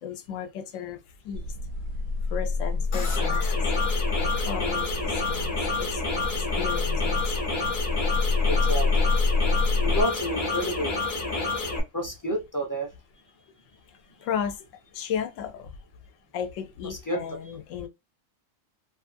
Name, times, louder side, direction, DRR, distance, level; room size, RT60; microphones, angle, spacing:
voice 1, 0.0-1.5 2.3-3.7 4.2-7.5 13.9-14.6 14.9-15.8 16.3-17.9, left 8 dB, 80° left, 0.9 m, -35 dB
sound 1, 1.3-10.0, left 3 dB, 90° right, 1.0 m, -27 dB
sound 2, 2.9-11.8, left 3 dB, 50° left, 0.8 m, -29 dB
voice 2, 8.5-9.1 9.8-10.9 11.9-12.9 16.9-17.2, equal, 20° left, 0.5 m, -30 dB
2.6 x 2.5 x 2.5 m
omnidirectional pair, 1.3 m